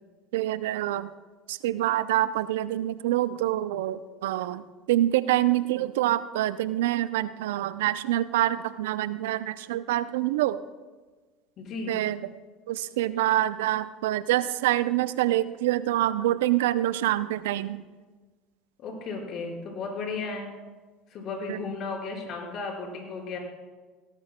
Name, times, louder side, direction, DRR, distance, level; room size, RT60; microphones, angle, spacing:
voice 1, 0.3-1.1 1.5-4.6 4.9-10.6 11.9-12.3 12.7-17.8 21.5-21.6, right 14 dB, 75° right, 15 dB, 0.5 m, -26 dB
voice 2, 11.6-12.0 18.8-20.5 21.1-23.4, left 4 dB, 50° left, -1 dB, 5.1 m, -34 dB
18.0 x 18.0 x 2.2 m, 1.3 s
hypercardioid pair, 75°, 0 cm